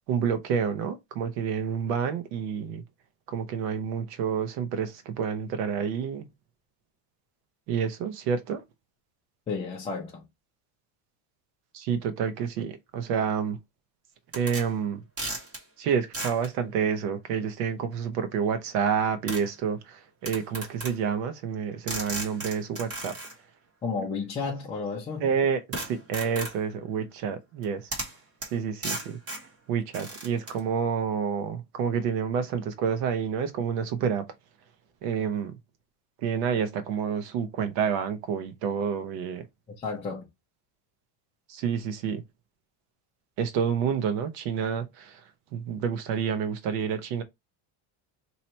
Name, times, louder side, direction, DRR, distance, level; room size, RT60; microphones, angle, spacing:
voice 1, 0.1-2.8 3.3-6.3 7.7-8.6 11.7-13.6 14.3-15.0 15.8-23.2 25.2-27.9 28.5-29.2 29.7-34.3 35.0-35.6 36.2-39.5 41.5-42.2 43.4-47.2, right 7 dB, 85° right, 1.1 m, -29 dB
voice 2, 9.5-10.2 23.8-25.2 39.8-40.3, left 4 dB, 15° left, 0.4 m, -32 dB
sound 1, 14.3-14.7 15.2-15.6 16.1-16.5 17.9-18.0 19.3-19.5 20.2-21.0 21.9-23.3 25.7-26.6 27.6-27.7 27.9-28.2 28.4-28.5 28.8-29.5 29.9-30.6, right 1 dB, 30° right, 1.3 m, -35 dB
3.0 x 2.8 x 4.3 m
cardioid pair, 165°, 49 cm